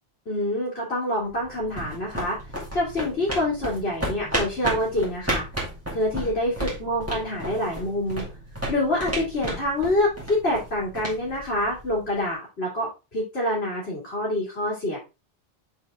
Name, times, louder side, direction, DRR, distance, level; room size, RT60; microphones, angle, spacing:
voice 1, 0.3-2.4 2.7-5.5 5.9-8.2 8.7-15.0, left 1 dB, 90° left, -6 dB, 2.6 m, -26 dB
sound 1, 1.3-12.1, right 1 dB, 15° right, 2.3 m, -33 dB
6.5 x 4.3 x 3.4 m, 0.28 s
omnidirectional pair, 1.0 m